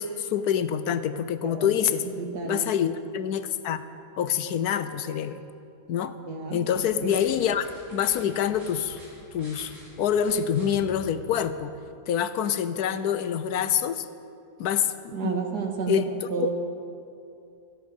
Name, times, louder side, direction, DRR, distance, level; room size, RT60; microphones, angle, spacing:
voice 1, 0.0-2.0 2.4-3.8 4.2-5.4 5.9-6.2 6.5-9.0 9.3-11.7 12.1-14.1 14.6-15.5 15.9-16.5, left 8 dB, 75° left, 12 dB, 1.2 m, -26 dB
voice 2, 1.4-1.7 2.2-2.6 6.3-6.6 7.0-7.1 15.1-16.5, right 5 dB, 75° right, 2 dB, 2.3 m, -31 dB
sound 1, 6.7-11.6, equal, 45° right, 5.2 m, -50 dB
25.5 x 10.5 x 5.4 m, 2.6 s
omnidirectional pair, 1.7 m